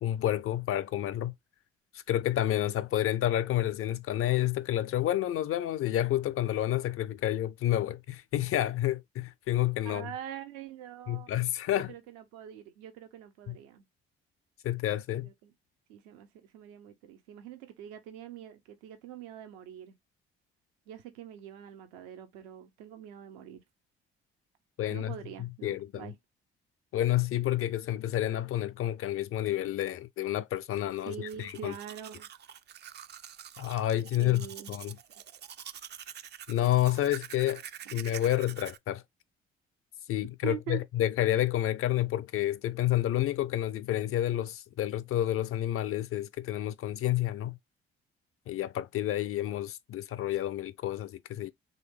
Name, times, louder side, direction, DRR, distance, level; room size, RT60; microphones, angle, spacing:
voice 1, 0.0-1.3 2.1-10.1 11.1-11.9 13.5-13.6 14.6-15.3 24.8-26.1 26.9-31.7 33.6-35.0 36.5-37.6 37.9-39.0 40.1-47.6 48.5-51.5, left 13 dB, 50° left, 0.4 m, -29 dB
voice 2, 9.8-13.8 15.2-15.5 15.9-20.0 20.9-23.6 24.9-26.1 31.0-32.3 34.2-34.8 37.8-38.3 40.4-40.8, right 10 dB, 75° right, 0.7 m, -44 dB
Domestic sounds home sounds, 31.1-38.8, right 9 dB, 40° right, 0.4 m, -46 dB
3.1 x 2.7 x 3.3 m
hypercardioid pair, 45°, 29 cm